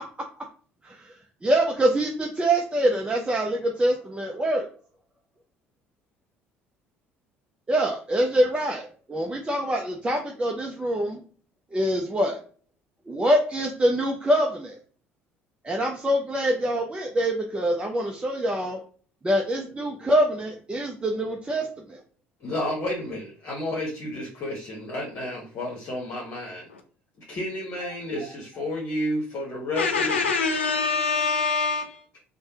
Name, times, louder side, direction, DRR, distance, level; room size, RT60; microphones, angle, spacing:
voice 1, 1.4-4.7 7.7-11.2 11.7-12.4 13.1-14.8 15.6-18.8 19.2-22.0, right 1 dB, 15° right, 0.5 m, -25 dB
voice 2, 22.4-26.7 27.3-30.1, left 1 dB, 45° left, 1.0 m, -31 dB
voice 3, 29.8-32.0, left 4 dB, 80° left, 0.5 m, -25 dB
3.2 x 2.1 x 2.8 m
figure-of-eight pair, 55°, 6 cm